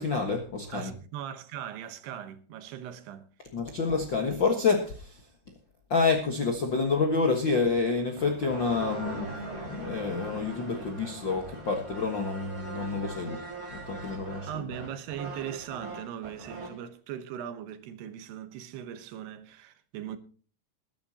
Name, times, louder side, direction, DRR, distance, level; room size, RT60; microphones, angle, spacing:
voice 1, 0.0-0.9 3.5-5.2 5.9-9.3 9.6-13.4 13.7-14.6, left 4 dB, 80° left, 1.0 m, -28 dB
voice 2, 0.7-3.3 13.2-13.4 14.0-20.2, right 10 dB, 80° right, 3.1 m, -40 dB
sound 1, 8.0-16.8, right 3 dB, 40° right, 5.5 m, -41 dB
21.0 x 11.5 x 2.9 m
omnidirectional pair, 4.7 m